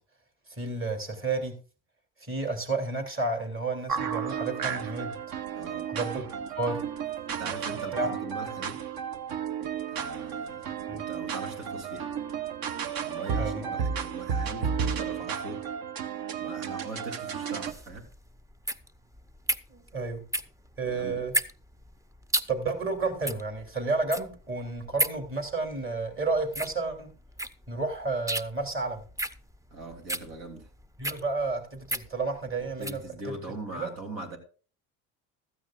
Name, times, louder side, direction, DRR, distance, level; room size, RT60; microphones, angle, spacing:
voice 1, 0.5-1.6 2.2-5.1 5.8-6.3 6.6-6.8 7.9-8.1 10.9-11.0 13.4-13.7 19.7-20.2 20.8-21.3 22.5-27.1 27.7-29.0 31.0-33.0 33.7-33.9, right 3 dB, 25° right, 3 dB, 3.2 m, -31 dB
sound 1, 3.9-17.7, right 7 dB, 50° right, 1.0 m, -33 dB
voice 2, 5.5-5.9 7.3-8.8 9.9-12.1 13.0-15.6 16.4-18.1 20.9-21.2 29.7-30.7 32.8-34.4, right 2 dB, 70° right, 5 dB, 3.3 m, -41 dB
sound 2, 17.6-33.1, right 1 dB, 5° right, 0.5 m, -34 dB
15.0 x 13.0 x 2.5 m, 0.37 s
supercardioid pair, 75°, 46 cm